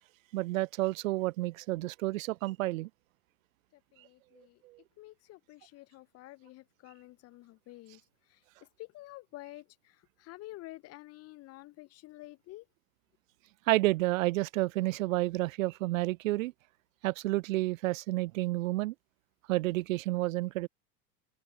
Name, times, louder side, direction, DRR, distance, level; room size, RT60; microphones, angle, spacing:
voice 1, 0.3-2.9 4.7-4.8 13.7-16.5 17.0-18.9 19.5-20.7, right 19 dB, 55° right, 0.8 m, -30 dB
voice 2, 4.0-4.6 5.0-8.0 8.8-9.6 10.2-12.6, left 18 dB, 30° left, 0.9 m, -49 dB
figure-of-eight pair, 85°, 48 cm